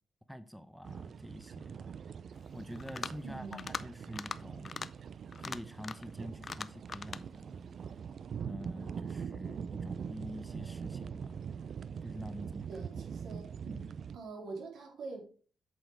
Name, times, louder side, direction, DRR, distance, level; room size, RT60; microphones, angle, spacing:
voice 1, 0.3-2.0 2.5-4.8 5.4-7.8 8.4-11.4 12.0-12.7 13.6-13.9, equal, ahead, 0.7 m, -47 dB
sound 1, 0.8-14.2, right 7 dB, 60° right, 0.4 m, -43 dB
sound 2, 2.8-3.2 3.5-3.8 4.1-4.4 4.6-4.9 5.3-6.1 6.4-7.2, left 5 dB, 40° left, 0.5 m, -40 dB
voice 2, 3.2-3.7 12.7-13.5 14.1-15.2, right 3 dB, 85° right, 3.6 m, -44 dB
8.2 x 6.4 x 4.6 m
cardioid pair, 115°, 0 cm